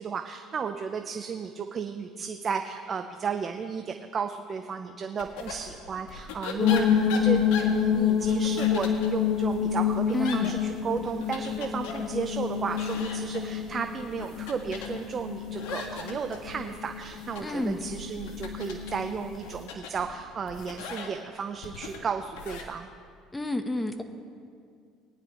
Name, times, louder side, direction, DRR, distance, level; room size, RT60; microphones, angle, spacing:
voice 1, 0.0-10.6 10.8-22.9, right 6 dB, 35° right, 7 dB, 0.6 m, -34 dB
sound 1, 5.2-22.6, left 4 dB, 85° left, 1.6 m, -41 dB
sound 2, 6.6-19.6, left 8 dB, 55° left, 0.9 m, -28 dB
voice 2, 10.1-10.6 17.4-17.8 23.3-24.0, left 2 dB, 10° left, 7 dB, 1.0 m, -29 dB
20.5 x 10.5 x 3.1 m, 2.2 s
supercardioid pair, 100°, 0 cm